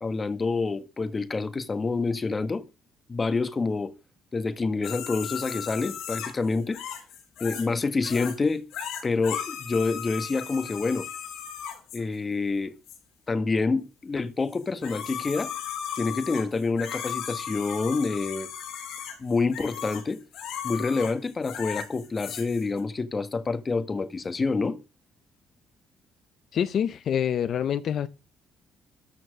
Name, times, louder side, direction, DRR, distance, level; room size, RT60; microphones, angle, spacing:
voice 1, 0.0-2.6 3.1-3.9 4.3-6.8 7.4-8.6 9.0-11.1 11.9-12.7 13.3-15.5 16.0-18.5 19.2-20.2 20.6-24.8, left 4 dB, 25° left, 1.4 m, -27 dB
sound 1, 4.8-7.8 8.0-8.4 8.7-12.0 12.9-13.0 14.5-22.8, left 9 dB, 85° left, 3.9 m, -36 dB
voice 2, 26.5-28.1, left 9 dB, 60° left, 0.7 m, -26 dB
13.5 x 4.5 x 7.4 m
cardioid pair, 100°, 0 cm